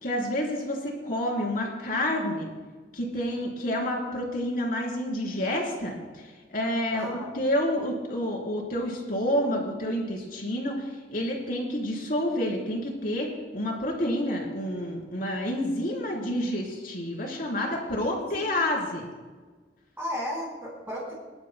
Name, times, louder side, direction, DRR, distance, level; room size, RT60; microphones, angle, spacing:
voice 1, 0.0-2.5 2.9-19.1, left 1 dB, 50° left, -1 dB, 3.6 m, -29 dB
voice 2, 6.9-7.3 18.0-18.6 20.0-21.1, equal, 10° right, -10 dB, 4.6 m, -35 dB
24.5 x 12.0 x 2.2 m, 1.4 s
head